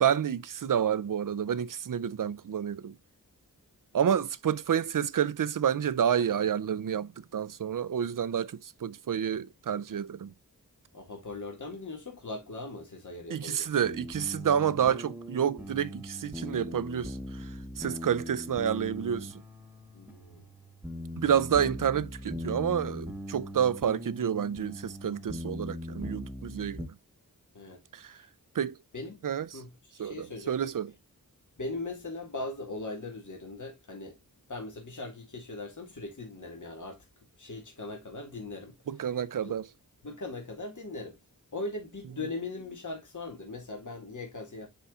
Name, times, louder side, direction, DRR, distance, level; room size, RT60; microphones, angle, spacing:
voice 1, 0.0-2.9 3.9-10.3 13.3-19.4 21.2-26.8 27.9-28.2 28.5-28.8 29.2-29.6 30.0-30.9 38.9-39.7, right 8 dB, 60° right, 0.5 m, -29 dB
voice 2, 10.9-13.7 19.9-20.4 27.5-27.8 28.1-28.3 28.9-29.2 29.5-30.5 31.6-34.2 34.5-37.0 37.4-38.8 39.4-39.6 40.0-41.2 41.5-44.7, left 2 dB, 55° left, 1.9 m, -39 dB
sound 1, 13.8-26.9, left 1 dB, 5° right, 1.1 m, -40 dB
10.0 x 4.1 x 2.3 m
wide cardioid pair, 70°, 36 cm